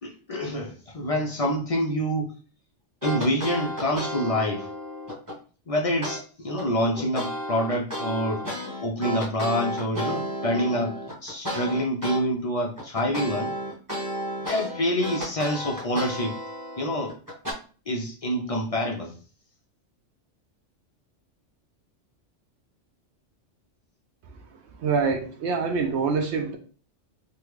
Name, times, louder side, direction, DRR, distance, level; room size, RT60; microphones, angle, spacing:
voice 1, 0.0-2.3 3.0-4.7 5.7-8.4 8.8-10.9 11.2-13.5 14.5-16.4 16.8-17.2 17.9-19.2, equal, 55° left, -1 dB, 0.4 m, -26 dB
sound 1, 3.0-5.4 6.0-6.2 6.6-12.2 12.6-17.5, equal, 15° right, 1.0 m, -33 dB
voice 2, 24.8-26.6, right 5 dB, 70° right, 4 dB, 0.8 m, -25 dB
3.3 x 2.2 x 3.1 m, 0.38 s
omnidirectional pair, 1.2 m